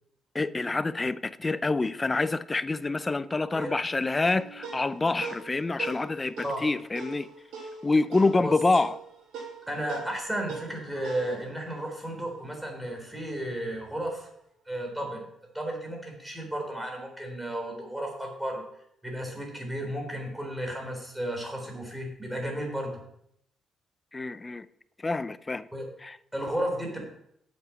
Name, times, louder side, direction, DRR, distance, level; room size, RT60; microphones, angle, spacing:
voice 1, 0.3-6.3 6.6-7.3 7.8-9.0 24.1-24.7 25.0-25.7 26.0-26.2, left 3 dB, 25° left, 0.5 m, -26 dB
sound 1, 4.2-13.0, right 4 dB, 85° right, 4.7 m, -42 dB
voice 2, 9.6-14.3 14.7-15.2 15.5-18.6 19.0-23.0 25.7-25.9 26.3-27.0, right 1 dB, 5° right, 4.0 m, -33 dB
8.0 x 7.6 x 6.0 m
cardioid pair, 90°, 0 cm